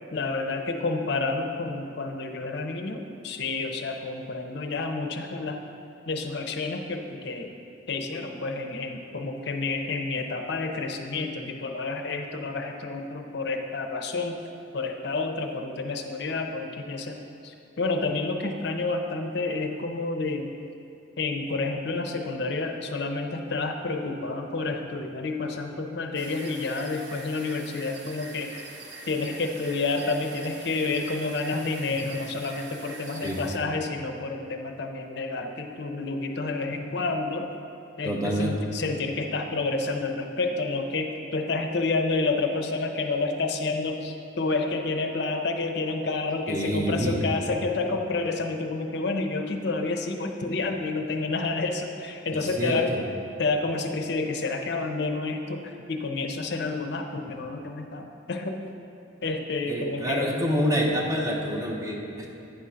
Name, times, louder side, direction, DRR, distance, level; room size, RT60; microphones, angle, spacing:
voice 1, 0.1-5.6 6.1-7.5 7.9-14.4 14.7-17.2 17.4-20.5 21.2-28.5 29.1-37.5 38.0-53.0 53.4-58.6 59.2-60.3, left 3 dB, 55° left, 4 dB, 0.5 m, -29 dB
sound 1, 26.1-33.6, right 3 dB, 60° right, 0.6 m, -44 dB
voice 2, 38.1-38.6 46.5-47.3 52.3-53.0 59.7-62.3, equal, 15° right, -2 dB, 0.7 m, -27 dB
9.1 x 3.7 x 5.6 m, 2.8 s
head